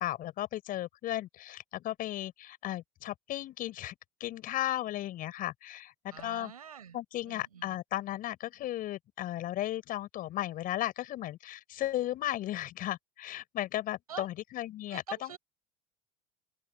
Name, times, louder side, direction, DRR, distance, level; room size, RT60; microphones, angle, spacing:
voice 1, 0.0-3.9 4.2-6.5 6.9-15.3, left 14 dB, 50° left, 6.0 m, -35 dB
voice 2, 6.1-7.0 7.3-7.8 14.1-14.3 14.9-15.4, right 8 dB, 85° right, 7.1 m, -45 dB
open air
hypercardioid pair, 75°, 19 cm